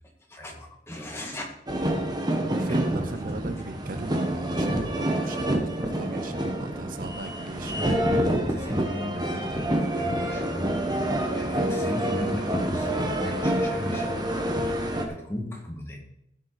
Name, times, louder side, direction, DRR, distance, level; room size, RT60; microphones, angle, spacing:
voice 1, 0.3-1.5 2.7-2.9 7.7-10.7 11.3-14.3 15.1-16.0, left 1 dB, 15° left, 0 dB, 2.3 m, -36 dB
sound 1, 1.7-15.0, right 1 dB, 25° right, 1.4 m, -27 dB
voice 2, 2.4-7.7, right 2 dB, 50° right, 10 dB, 0.7 m, -37 dB
15.5 x 7.3 x 4.2 m, 0.78 s
head